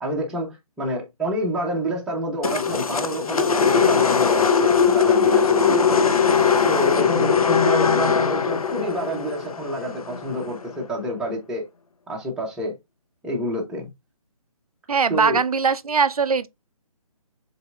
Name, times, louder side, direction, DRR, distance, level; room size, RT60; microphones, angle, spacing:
voice 1, 0.0-6.1 6.7-11.7 12.1-12.8 13.2-13.9 15.1-15.4, equal, 5° right, 0.8 m, -28 dB
sound 1, 2.4-10.7, left 6 dB, 75° left, 0.6 m, -20 dB
voice 2, 14.9-16.5, right 5 dB, 75° right, 0.5 m, -21 dB
6.6 x 3.3 x 2.3 m
figure-of-eight pair, 145°, 19 cm